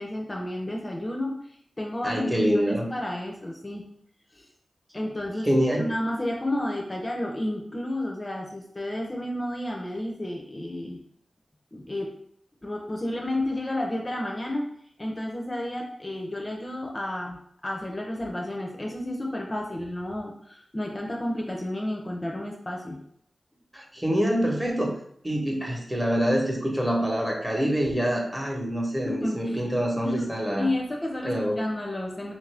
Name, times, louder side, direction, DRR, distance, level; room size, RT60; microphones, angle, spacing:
voice 1, 0.0-1.4 1.8-3.9 4.3-4.4 4.9-5.5 5.8-11.0 11.7-12.1 12.6-14.7 15.0-23.0 29.1-29.6 30.0-32.4, left 1 dB, 30° left, 0 dB, 0.5 m, -31 dB
voice 2, 2.0-2.9 5.4-5.9 23.7-25.0 25.2-30.7 31.2-31.6, equal, 15° right, -1 dB, 0.9 m, -25 dB
3.0 x 2.5 x 3.3 m, 0.66 s
cardioid pair, 60°, 0 cm